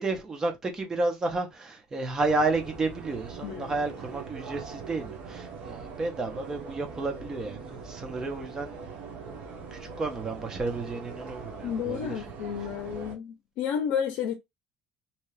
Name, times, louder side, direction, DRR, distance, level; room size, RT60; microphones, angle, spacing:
voice 1, 0.0-8.8 9.7-12.2, right 3 dB, 20° right, 0.6 m, -31 dB
sound 1, 2.2-13.2, right 5 dB, 55° right, 0.8 m, -42 dB
voice 2, 11.6-14.3, left 8 dB, 80° left, 0.5 m, -31 dB
2.8 x 2.2 x 3.1 m
cardioid pair, 165°, 3 cm